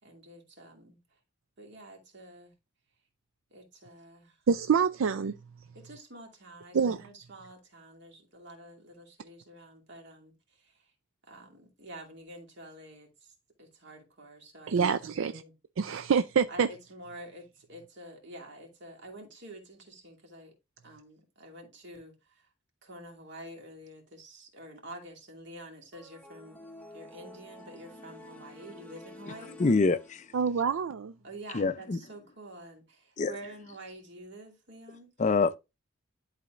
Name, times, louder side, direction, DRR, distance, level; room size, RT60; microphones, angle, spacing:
voice 1, 0.0-1.2 1.6-2.5 3.5-4.4 5.7-10.9 11.3-15.5 16.5-20.5 20.8-22.5 22.8-26.6 26.9-29.6 31.2-35.1, right 1 dB, 60° right, 2.4 m, -48 dB
voice 2, 4.5-5.3 6.7-7.0 14.7-15.3 15.8-16.7 30.3-31.1, right 6 dB, 75° right, 0.4 m, -26 dB
sound 1, 25.9-30.6, left 1 dB, 5° left, 0.8 m, -50 dB
voice 3, 29.6-30.3 31.5-32.0 33.2-33.3 35.2-35.6, left 4 dB, 35° left, 0.4 m, -25 dB
11.5 x 4.2 x 2.5 m
head